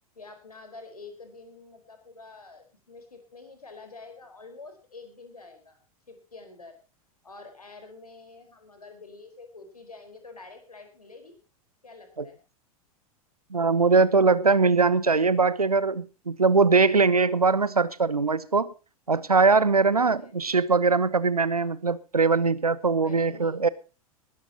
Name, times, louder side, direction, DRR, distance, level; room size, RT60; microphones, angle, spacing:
voice 1, 0.1-5.8 6.1-6.8 7.2-11.3 11.8-12.4 19.9-20.3 21.5-21.8 22.9-23.7, left 3 dB, 80° left, 4.6 m, -47 dB
voice 2, 13.5-18.7 19.1-23.7, right 4 dB, 85° right, 1.0 m, -21 dB
20.0 x 13.5 x 2.9 m
figure-of-eight pair, 90°, 19 cm